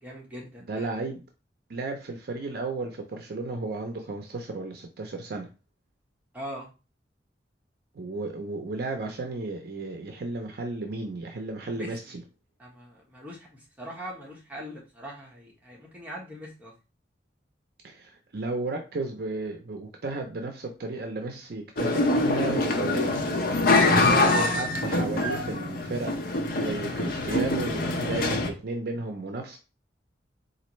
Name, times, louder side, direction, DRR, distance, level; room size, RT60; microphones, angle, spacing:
voice 1, 0.0-0.9 6.3-6.7 11.7-12.1 12.6-16.7, equal, 10° right, 1.1 m, -41 dB
voice 2, 0.7-1.2 1.7-5.5 7.9-12.2 17.8-26.2 26.6-29.6, right 3 dB, 60° right, 0.5 m, -34 dB
sound 1, 21.8-28.5, left 2 dB, 55° left, 0.6 m, -24 dB
4.2 x 2.5 x 3.0 m
head